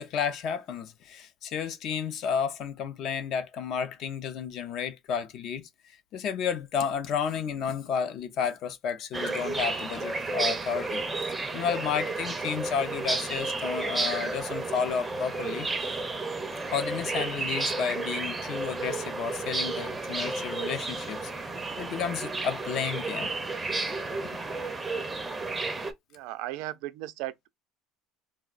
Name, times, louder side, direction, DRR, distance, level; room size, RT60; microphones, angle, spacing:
voice 1, 0.0-5.7 6.1-11.0 11.5-15.7 16.7-21.3 21.8-23.3, left 7 dB, 50° left, 0.4 m, -32 dB
sound 1, 9.1-25.9, right 3 dB, 10° right, 0.5 m, -32 dB
voice 2, 26.1-27.5, right 16 dB, 75° right, 0.4 m, -36 dB
3.5 x 2.1 x 2.3 m
cardioid pair, 140°, 0 cm